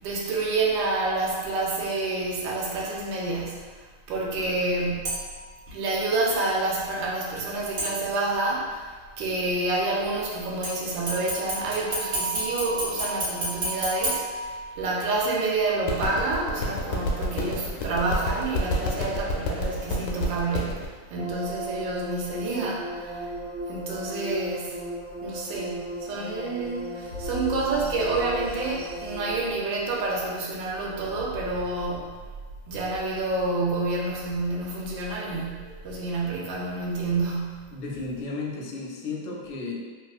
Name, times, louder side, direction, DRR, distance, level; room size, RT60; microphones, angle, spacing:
voice 1, 0.0-3.7 4.1-5.3 5.7-8.8 9.2-23.2 23.7-24.8 25.2-32.3 32.6-37.7, right 2 dB, 75° right, -3 dB, 1.3 m, -28 dB
sound 1, 5.0-5.5 7.8-8.5 10.6-15.0 15.4-15.5, right 1 dB, 50° right, 1.3 m, -31 dB
sound 2, 15.8-20.9, left 1 dB, 90° left, 1.4 m, -29 dB
sound 3, 21.1-29.4, right 1 dB, 50° left, 0.3 m, -36 dB
voice 2, 37.7-39.8, left 3 dB, 70° left, -2 dB, 1.0 m, -33 dB
3.3 x 2.4 x 2.4 m, 1.5 s
omnidirectional pair, 2.2 m